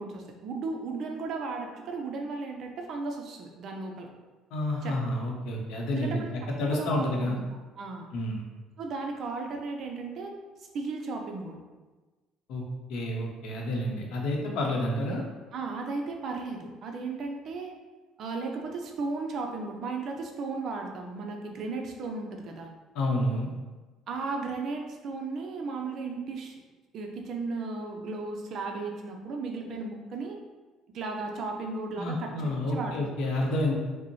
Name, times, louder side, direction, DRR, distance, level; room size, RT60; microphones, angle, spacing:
voice 1, 0.0-4.1 4.8-5.0 5.9-6.3 6.6-7.4 7.8-8.1 8.8-10.3 10.7-11.6 15.5-17.7 18.2-22.7 24.1-26.6 26.9-30.4 30.9-33.0, right 3 dB, 50° right, 2 dB, 0.5 m, -35 dB
voice 2, 4.5-7.4 8.1-8.4 12.5-12.6 12.9-15.2 22.9-23.5 31.9-33.7, left 1 dB, 75° left, 0 dB, 0.8 m, -29 dB
5.0 x 2.0 x 3.1 m, 1.3 s
cardioid pair, 150°, 0 cm